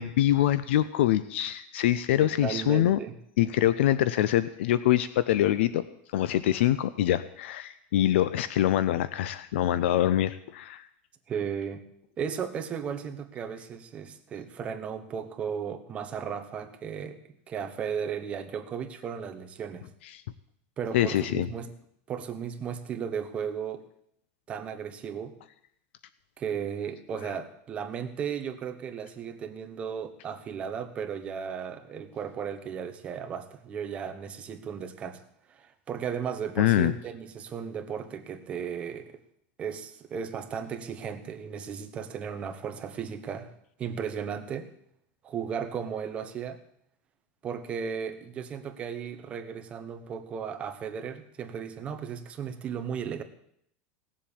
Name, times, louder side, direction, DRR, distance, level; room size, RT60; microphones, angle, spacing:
voice 1, 0.0-3.0 3.4-5.8 6.1-10.9 20.1-20.2 20.9-21.5 36.6-36.9, left 12 dB, 80° left, 15 dB, 0.7 m, -24 dB
voice 2, 2.2-3.1 11.3-11.8 12.2-17.2 17.5-19.9 20.8-21.7 22.1-23.8 24.5-25.3 26.4-35.2 35.5-39.1 39.6-43.5 43.8-44.7 45.2-46.6 47.4-53.2, right 7 dB, 20° right, 7 dB, 1.0 m, -35 dB
17.5 x 7.5 x 8.6 m, 0.71 s
supercardioid pair, 180°, 6 cm